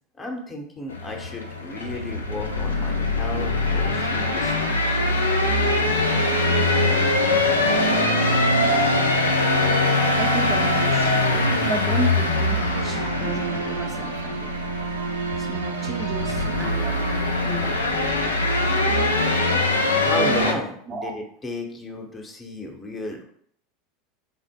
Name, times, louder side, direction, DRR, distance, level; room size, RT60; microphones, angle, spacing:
voice 1, 0.2-4.7 20.0-23.2, left 2 dB, 25° left, 2 dB, 0.8 m, -34 dB
sound 1, 0.9-20.5, left 2 dB, 90° left, 0.4 m, -22 dB
sound 2, 5.5-18.4, right 4 dB, 85° right, 0.4 m, -31 dB
voice 2, 10.2-11.2 11.7-14.5 15.4-17.0 17.5-18.1 20.9-21.1, right 3 dB, 30° right, 2 dB, 0.6 m, -33 dB
3.6 x 2.1 x 3.6 m, 0.64 s
hypercardioid pair, 80°, 0 cm